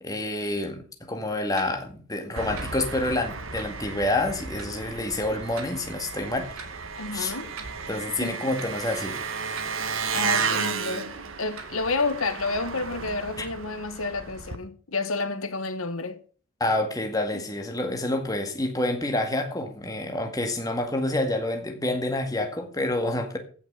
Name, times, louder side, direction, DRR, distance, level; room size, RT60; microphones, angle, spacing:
voice 1, 0.0-6.7 7.1-7.3 7.9-9.2 13.4-13.5 16.6-23.4, left 1 dB, 15° left, 1.9 m, -28 dB
sound 1, 1.6-1.7 2.6-2.7 3.6-3.7 4.6-4.7 5.6-5.7 6.6-6.7 7.6-7.7 8.6-8.7 9.6-9.7 10.6-10.7 11.6-11.7, right 5 dB, 85° right, 2.8 m, -40 dB
Engine, 2.4-14.6, right 5 dB, 65° right, 1.4 m, -33 dB
voice 2, 7.0-7.5 8.2-8.3 10.1-16.2, left 3 dB, 75° left, 1.4 m, -30 dB
16.0 x 6.1 x 6.3 m
head